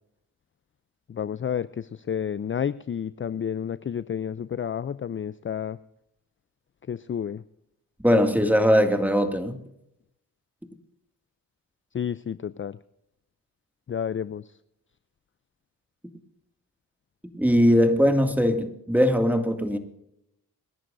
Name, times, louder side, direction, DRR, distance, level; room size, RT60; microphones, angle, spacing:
voice 1, 1.1-5.8 6.9-7.4 11.9-12.8 13.9-14.4, left 8 dB, 35° left, 0.5 m, -30 dB
voice 2, 8.0-9.6 17.3-19.8, equal, 5° right, 2.2 m, -20 dB
27.5 x 11.0 x 2.6 m
cardioid pair, 55°, 37 cm